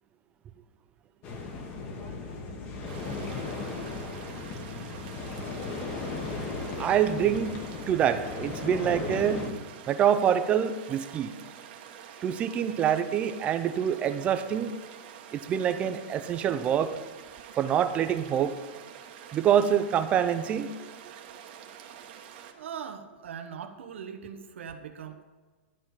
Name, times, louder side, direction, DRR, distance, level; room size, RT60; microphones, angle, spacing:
sound 1, 1.2-9.5, left 3 dB, 25° left, 1.1 m, -36 dB
sound 2, 2.9-22.5, right 9 dB, 45° right, 1.2 m, -47 dB
voice 1, 6.8-7.6 7.9-9.5 9.9-11.3 12.2-14.7 15.3-16.9 17.6-18.5 19.3-20.9, right 9 dB, 20° right, 10 dB, 0.5 m, -26 dB
voice 2, 22.5-25.2, right 7 dB, 85° right, 6 dB, 1.2 m, -41 dB
12.0 x 4.4 x 7.6 m, 1.4 s
supercardioid pair, 160°, 6 cm